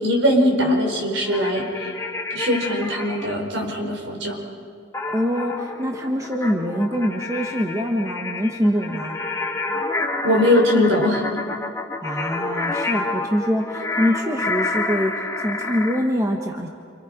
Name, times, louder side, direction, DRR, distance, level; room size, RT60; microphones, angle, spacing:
voice 1, 0.0-1.9 2.3-4.4 10.2-11.3, left 1 dB, 65° right, 1 dB, 4.7 m, -20 dB
sound 1, 1.3-3.3 4.9-16.0, left 3 dB, 15° left, 1.8 m, -29 dB
voice 2, 5.1-9.2 12.0-16.7, equal, 15° right, 2 dB, 1.3 m, -24 dB
28.5 x 27.0 x 5.1 m, 2.3 s
head